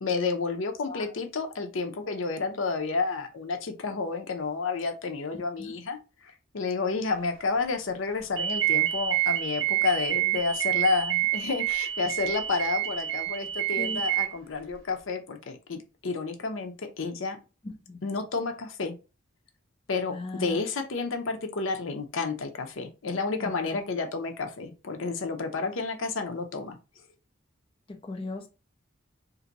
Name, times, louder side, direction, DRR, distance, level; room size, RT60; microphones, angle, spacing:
voice 1, 0.0-17.4 18.0-19.0 19.9-26.8, left 4 dB, 80° left, 0.7 m, -30 dB
voice 2, 5.3-5.7 13.8-14.0 17.6-18.0 20.1-20.6 23.4-23.8 27.9-28.5, left 2 dB, 25° left, 0.4 m, -38 dB
sound 1, 8.4-14.3, right 14 dB, 75° right, 0.7 m, -28 dB
2.7 x 2.6 x 3.9 m
head